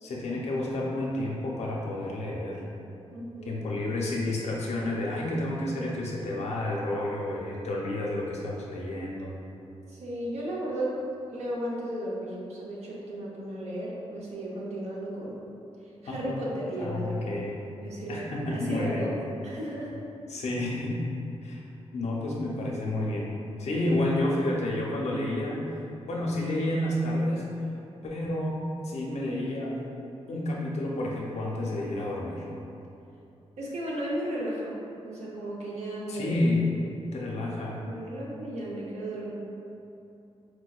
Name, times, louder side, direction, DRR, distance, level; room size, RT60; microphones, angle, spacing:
voice 1, 0.0-2.6 3.5-9.3 16.1-16.4 16.8-17.6 18.1-19.1 20.3-21.0 21.4-21.6 21.9-23.3 23.6-25.7 26.1-27.5 28.0-28.6 28.8-29.8 30.3-32.5 36.1-36.6 37.1-37.8, left 1 dB, 75° left, -3 dB, 0.6 m, -30 dB
voice 2, 3.1-3.6 9.9-11.0 11.3-15.4 16.0-17.3 17.8-19.1 19.4-19.9 33.6-34.8 35.0-36.5 37.4-37.5 37.9-39.3, right 1 dB, 75° right, -5 dB, 0.7 m, -34 dB
4.6 x 2.2 x 2.3 m, 2.8 s
cardioid pair, 95°, 11 cm